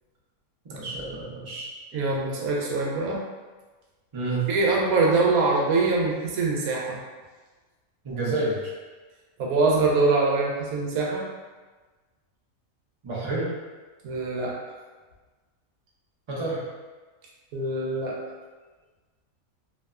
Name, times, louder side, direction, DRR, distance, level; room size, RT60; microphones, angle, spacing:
voice 1, 0.7-1.7 4.1-4.4 8.0-8.7 13.0-13.5 16.3-16.6, right 2 dB, 45° right, -7 dB, 0.4 m, -29 dB
voice 2, 1.9-3.2 4.5-7.0 9.4-11.2 14.0-14.5 17.5-18.2, right 3 dB, 85° right, -3 dB, 1.0 m, -23 dB
2.8 x 2.1 x 2.3 m, 1.3 s
omnidirectional pair, 1.5 m